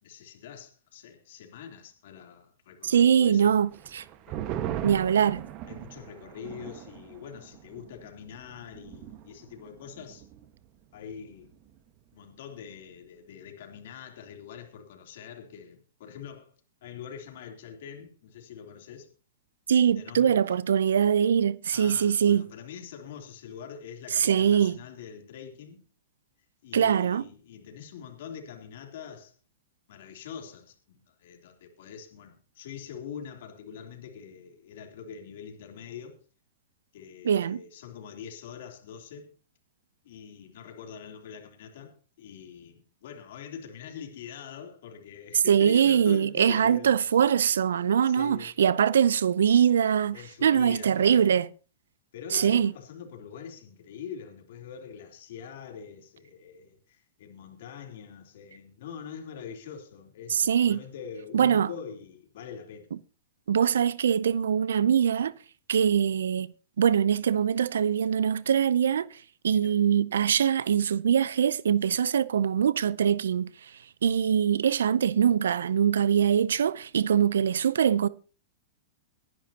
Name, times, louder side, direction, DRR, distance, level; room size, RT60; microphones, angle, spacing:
voice 1, 0.0-3.6 4.3-4.5 5.2-5.3 5.7-10.3 10.9-11.6 12.1-16.5 16.8-19.1 19.9-20.4 21.7-25.8 26.6-29.4 29.9-36.2 36.9-39.3 40.0-46.9 47.8-48.5 50.1-51.3 52.1-62.9 69.5-69.8, left 7 dB, 65° left, 3.3 m, -44 dB
voice 2, 2.8-4.0 4.8-5.4 19.7-22.4 24.1-24.8 26.7-27.3 37.2-37.6 45.5-50.2 50.4-51.5 52.3-52.7 60.3-60.8 61.3-61.7 63.5-65.3 65.7-69.2 69.4-73.5 74.0-78.1, right 8 dB, 85° right, 0.6 m, -23 dB
sound 1, 3.7-10.6 10.9-11.0 11.4-11.9, right 11 dB, 40° right, 1.5 m, -39 dB
23.0 x 10.5 x 2.9 m
hypercardioid pair, 125°, 0 cm